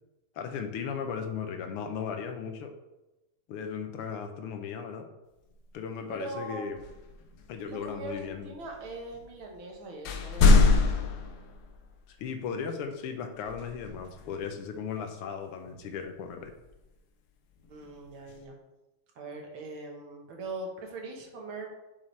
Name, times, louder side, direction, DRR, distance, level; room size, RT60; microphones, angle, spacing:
voice 1, 0.4-2.7 3.5-5.1 5.7-6.8 7.5-8.5 12.1-16.5, left 6 dB, 85° left, 6 dB, 1.8 m, -36 dB
sound 1, 5.5-5.6 6.7-9.7 10.0-12.2 13.4-14.6 16.4-16.9 17.6-18.4, left 3 dB, 70° left, 1.0 m, -26 dB
voice 2, 6.1-6.8 7.7-10.6 15.7-15.8 17.7-18.6 19.2-21.7, right 2 dB, 70° right, 1 dB, 2.0 m, -41 dB
7.4 x 5.9 x 3.3 m, 1.0 s
omnidirectional pair, 2.4 m